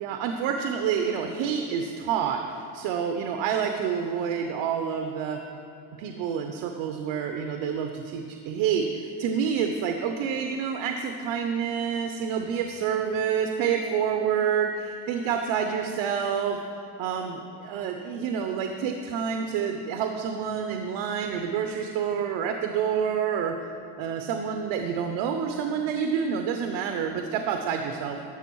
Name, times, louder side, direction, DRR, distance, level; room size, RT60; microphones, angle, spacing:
voice 1, 0.0-5.4 6.0-16.6 17.0-23.5 24.0-28.2, right 7 dB, 85° right, 5 dB, 0.8 m, -28 dB
12.5 x 6.8 x 4.6 m, 2.6 s
cardioid pair, 180°, 44 cm